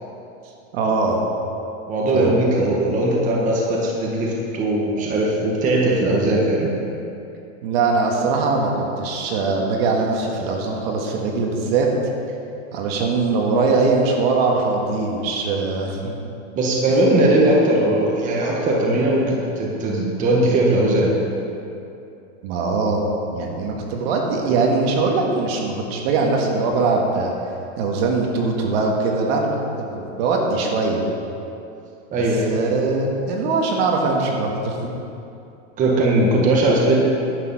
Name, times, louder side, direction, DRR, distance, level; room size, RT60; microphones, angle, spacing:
voice 1, 0.7-1.2 2.1-2.4 7.6-11.9 12.7-16.2 22.4-23.0 23.3-27.3 27.8-29.5 29.8-31.0 32.5-34.9, right 3 dB, 55° right, 0 dB, 1.8 m, -21 dB
voice 2, 1.9-6.7 16.5-21.2 32.1-32.5 35.8-37.0, right 1 dB, 20° right, -3 dB, 1.4 m, -19 dB
11.0 x 8.4 x 5.5 m, 2.7 s
supercardioid pair, 155°, 36 cm